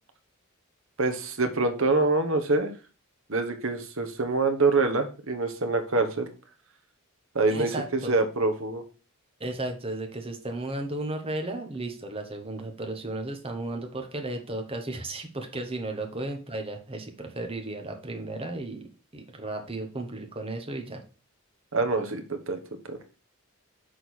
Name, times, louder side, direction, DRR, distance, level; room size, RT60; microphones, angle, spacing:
voice 1, 1.0-2.7 3.3-6.3 7.3-8.8 21.7-22.6 22.9-23.0, right 3 dB, 60° right, 6 dB, 1.2 m, -25 dB
voice 2, 7.5-8.1 9.4-18.8 19.1-21.0, right 2 dB, 25° right, 3 dB, 1.2 m, -34 dB
6.4 x 3.8 x 6.2 m, 0.35 s
head